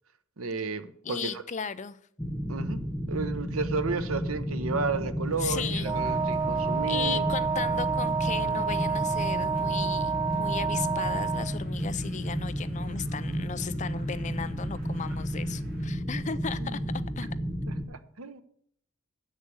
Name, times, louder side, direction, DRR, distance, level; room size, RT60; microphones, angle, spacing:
voice 1, 0.4-1.4 2.5-2.8 3.1-7.2 16.6-16.7 17.7-18.4, right 4 dB, 80° right, 11 dB, 0.9 m, -33 dB
voice 2, 1.0-2.0 5.4-6.0 6.9-16.8 17.2-17.3, left 6 dB, 35° left, 14 dB, 0.5 m, -36 dB
sound 1, 2.2-17.9, equal, 5° left, 1.0 m, -32 dB
sound 2, 5.2-15.9, left 5 dB, 45° right, 2.8 m, -48 dB
Wind instrument woodwind instrument, 5.8-11.6, right 6 dB, 20° right, 0.4 m, -29 dB
7.7 x 6.5 x 7.9 m, 0.66 s
head